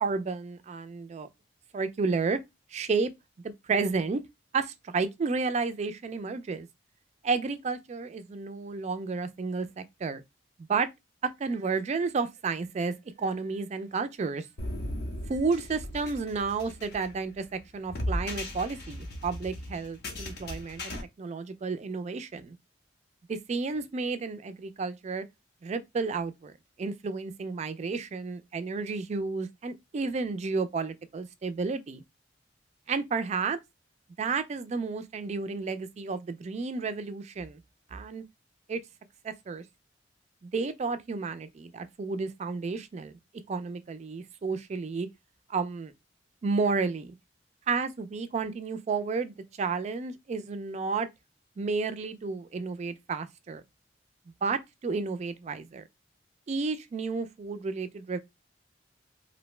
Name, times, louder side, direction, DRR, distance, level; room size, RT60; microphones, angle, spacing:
voice 1, 0.0-1.3 1.7-2.4 2.7-3.1 3.4-4.2 4.5-6.7 7.2-10.2 10.7-10.9 11.2-14.5 15.3-22.6 23.3-25.3 25.6-26.5 26.8-32.0 32.9-33.6 34.2-37.6 37.9-38.2 38.7-38.8 39.2-39.6 40.4-43.1 43.5-45.1 45.5-45.9 46.4-47.1 47.7-51.1 51.6-53.6 54.4-55.9 56.5-58.2, right 4 dB, 40° right, 0.3 m, -31 dB
sound 1, 14.6-21.0, left 1 dB, 60° left, 0.6 m, -37 dB
2.6 x 2.1 x 3.1 m
head